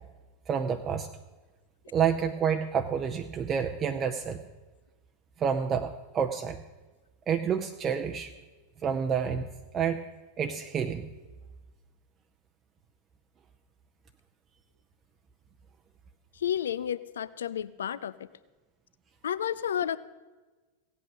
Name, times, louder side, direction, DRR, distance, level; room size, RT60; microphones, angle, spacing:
voice 1, 0.5-1.1 1.9-4.4 5.4-6.6 7.3-8.3 8.8-9.5 9.7-10.0 10.4-11.1, right 7 dB, 25° right, 6 dB, 0.6 m, -28 dB
voice 2, 16.3-18.3 19.2-20.0, left 9 dB, 65° left, 17 dB, 0.4 m, -31 dB
17.0 x 8.4 x 6.3 m, 1.2 s
figure-of-eight pair, 90°, 0 cm